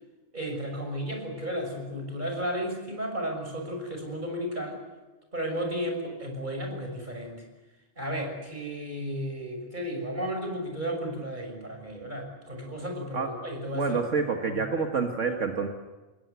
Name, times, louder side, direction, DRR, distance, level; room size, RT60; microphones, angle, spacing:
voice 1, 0.3-4.8 5.3-7.4 8.0-14.0 14.4-14.6, equal, 40° right, 2 dB, 6.6 m, -33 dB
voice 2, 13.7-15.7, right 5 dB, 80° right, 4 dB, 2.1 m, -27 dB
28.5 x 21.5 x 8.3 m, 1.2 s
omnidirectional pair, 1.3 m